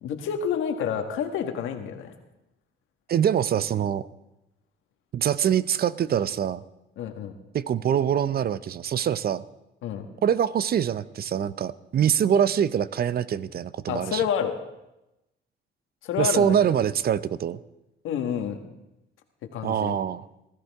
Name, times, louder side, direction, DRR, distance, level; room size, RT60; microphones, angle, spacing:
voice 1, 0.0-2.1 7.0-7.3 9.8-10.1 13.9-14.5 16.0-16.6 18.0-18.6 19.5-20.0, left 8 dB, 85° left, 6 dB, 1.5 m, -28 dB
voice 2, 3.1-4.1 5.1-6.6 7.5-9.4 10.2-14.2 16.2-17.6 19.6-20.3, right 9 dB, 50° right, 17 dB, 0.6 m, -24 dB
19.0 x 13.5 x 3.5 m, 0.93 s
cardioid pair, 90°, 20 cm